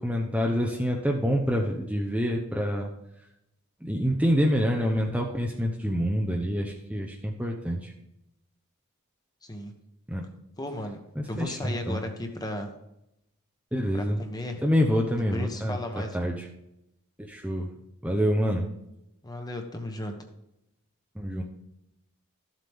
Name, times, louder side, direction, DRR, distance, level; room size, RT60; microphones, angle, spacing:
voice 1, 0.0-2.9 3.8-7.9 10.1-10.2 11.2-12.0 13.7-14.2 14.6-15.8 16.1-16.5 17.2-17.7 18.0-18.7 21.1-21.4, equal, 5° right, 0 dB, 0.7 m, -26 dB
voice 2, 9.4-9.7 10.6-11.0 11.3-12.7 13.9-14.6 15.3-16.2 19.2-20.2, left 1 dB, 20° left, 4 dB, 1.1 m, -35 dB
13.5 x 7.6 x 3.6 m, 0.85 s
head